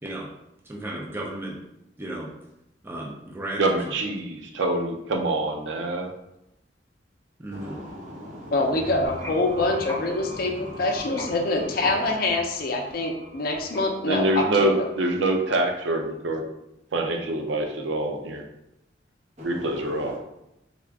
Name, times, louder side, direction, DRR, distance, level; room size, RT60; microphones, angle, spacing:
voice 1, 0.6-1.6 2.0-2.3 2.8-4.0 7.4-7.8, right 1 dB, 10° right, -2 dB, 0.4 m, -34 dB
voice 2, 3.6-6.1 14.1-16.4 16.9-18.4 19.4-20.2, right 2 dB, 85° right, 3 dB, 0.5 m, -25 dB
voice 3, 7.5-8.9 10.2-10.9 19.4-20.2, equal, 40° right, -4 dB, 1.0 m, -40 dB
voice 4, 8.5-14.9, left 2 dB, 50° left, 2 dB, 0.5 m, -25 dB
sound 1, 8.6-15.4, left 1 dB, 15° left, 1.1 m, -40 dB
3.5 x 2.4 x 3.4 m, 0.84 s
head